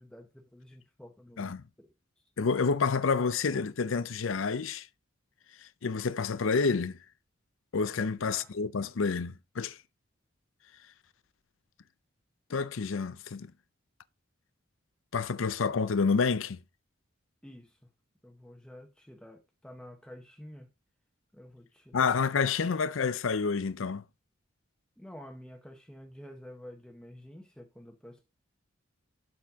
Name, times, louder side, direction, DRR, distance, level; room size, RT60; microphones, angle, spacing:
voice 1, 0.0-1.5 1.8-2.3 8.3-8.5 17.4-17.9 18.2-20.7 21.3-22.2 25.0-28.3, left 1 dB, 5° left, 0.8 m, -50 dB
voice 2, 2.4-4.9 5.8-7.0 7.7-9.8 12.5-13.5 15.1-16.6 21.9-24.0, left 5 dB, 80° left, 0.6 m, -29 dB
12.0 x 4.3 x 3.5 m
head